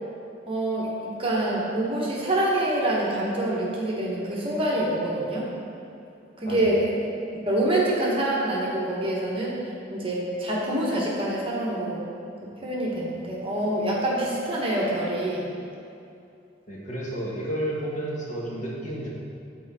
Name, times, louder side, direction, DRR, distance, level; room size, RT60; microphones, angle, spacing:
voice 1, 0.5-5.5 6.4-6.9 7.4-9.6 9.9-12.0 12.6-15.4, right 1 dB, 30° right, -4 dB, 1.2 m, -26 dB
voice 2, 16.7-19.1, right 1 dB, 40° left, -5 dB, 1.2 m, -31 dB
7.7 x 4.5 x 4.2 m, 2.6 s
head